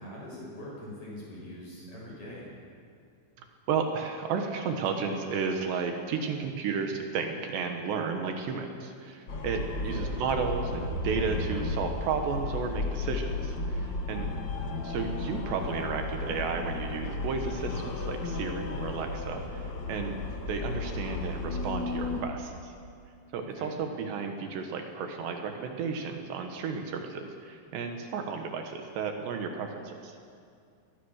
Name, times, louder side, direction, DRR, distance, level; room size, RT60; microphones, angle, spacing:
voice 1, 0.0-2.5 9.8-10.1 14.2-14.5 23.6-23.7, left 1 dB, 40° left, -4 dB, 8.0 m, -43 dB
voice 2, 3.4-14.3 14.8-20.2 20.5-22.7 23.3-30.2, right 5 dB, 75° right, 4 dB, 3.4 m, -33 dB
sound 1, 9.3-22.2, left 3 dB, 60° left, 1.2 m, -34 dB
22.5 x 19.5 x 6.5 m, 2.3 s
omnidirectional pair, 5.2 m